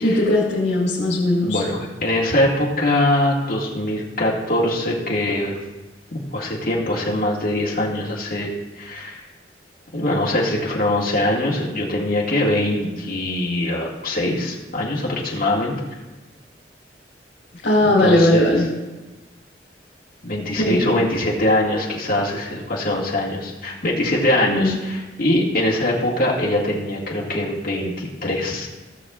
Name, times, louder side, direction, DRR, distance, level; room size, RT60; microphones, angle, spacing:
voice 1, 0.0-1.6 17.6-18.7 20.6-20.8 24.4-24.7, left 1 dB, 85° left, -7 dB, 2.0 m, -18 dB
voice 2, 1.4-5.6 6.1-8.5 8.8-9.2 9.9-15.8 17.8-18.5 20.2-28.7, left 1 dB, 55° left, -4 dB, 1.9 m, -22 dB
17.0 x 7.5 x 2.4 m, 1.2 s
head